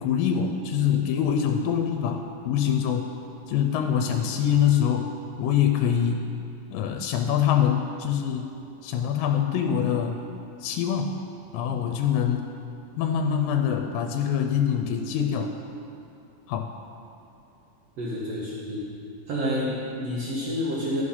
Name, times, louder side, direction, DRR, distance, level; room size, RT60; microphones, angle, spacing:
voice 1, 0.0-3.1 3.5-5.1 5.4-6.3 6.7-8.5 8.8-10.2 10.6-11.3 11.5-12.5 13.0-15.5 16.5-16.7, left 8 dB, 85° left, 4 dB, 2.3 m, -24 dB
voice 2, 18.0-18.9 19.3-21.0, equal, 60° right, -6 dB, 1.9 m, -29 dB
13.5 x 4.8 x 5.5 m, 2.8 s
omnidirectional pair, 4.0 m